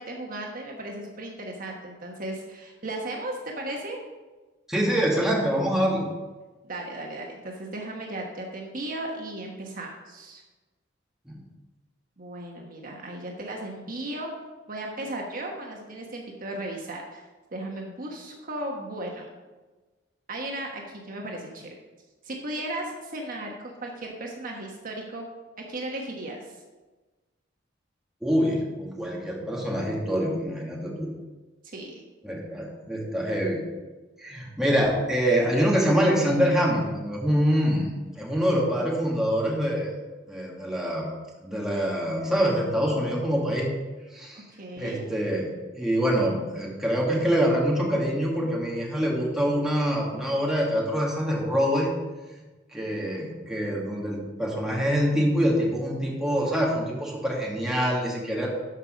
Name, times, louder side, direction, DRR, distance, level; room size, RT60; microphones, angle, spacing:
voice 1, 0.0-4.0 6.6-10.4 12.2-14.3 14.7-19.3 20.3-21.7 22.2-25.3 25.7-26.5 31.6-32.0 44.3-45.1, right 1 dB, 50° right, 0 dB, 1.3 m, -36 dB
voice 2, 4.7-6.1 11.3-11.4 28.2-31.1 32.2-33.6 34.2-39.9 40.3-41.0 41.4-43.7 44.1-44.4 44.8-45.5 45.8-51.9 52.7-58.5, equal, 5° right, -4 dB, 2.2 m, -25 dB
12.5 x 5.5 x 5.2 m, 1.2 s
head